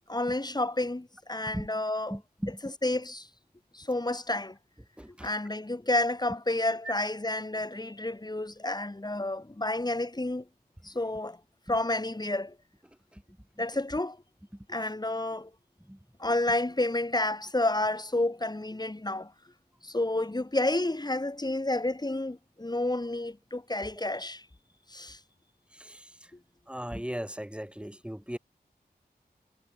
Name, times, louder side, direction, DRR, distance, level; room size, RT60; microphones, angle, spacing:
voice 1, 0.1-2.2 2.8-3.3 3.7-4.6 5.2-10.4 10.8-11.4 11.7-12.6 13.6-14.2 14.7-15.5 16.2-19.3 19.8-24.4 24.9-25.2, left 2 dB, 25° left, 2.9 m, -30 dB
voice 2, 2.1-2.6 5.0-5.3 6.8-6.9 10.8-10.9 11.7-11.8 13.1-13.7 14.5-14.8 15.8-16.0 25.7-26.3 26.7-28.4, equal, 5° right, 3.1 m, -39 dB
wide cardioid pair, 80°, 17 cm